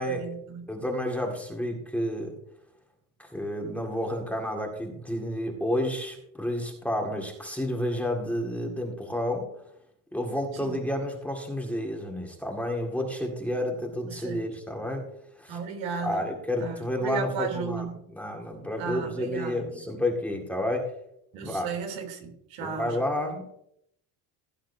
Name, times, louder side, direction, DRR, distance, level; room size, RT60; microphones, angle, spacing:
voice 1, 0.0-0.6 10.6-10.8 14.1-14.4 15.5-16.2 16.6-18.0 18.8-19.8 21.3-23.0, right 5 dB, 75° right, 3 dB, 3.4 m, -35 dB
voice 2, 0.7-2.4 3.2-9.5 10.1-15.1 15.4-15.6 16.0-20.9 21.4-21.7 22.6-23.5, left 1 dB, 5° left, 0 dB, 2.0 m, -30 dB
17.0 x 9.1 x 2.7 m, 0.73 s
cardioid pair, 145°, 44 cm